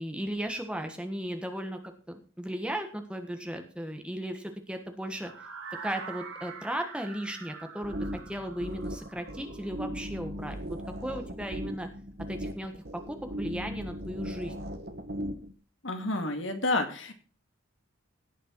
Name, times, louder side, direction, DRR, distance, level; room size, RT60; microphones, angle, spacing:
voice 1, 0.0-5.3 5.8-11.9 12.3-14.7, right 1 dB, 5° right, 5 dB, 1.4 m, -36 dB
sound 1, 5.2-11.1, right 5 dB, 80° right, 4.2 m, -45 dB
sound 2, 7.8-15.5, equal, 50° right, 1.4 m, -38 dB
voice 2, 15.8-17.1, left 2 dB, 65° left, 6 dB, 2.1 m, -29 dB
17.5 x 6.6 x 4.6 m, 0.38 s
head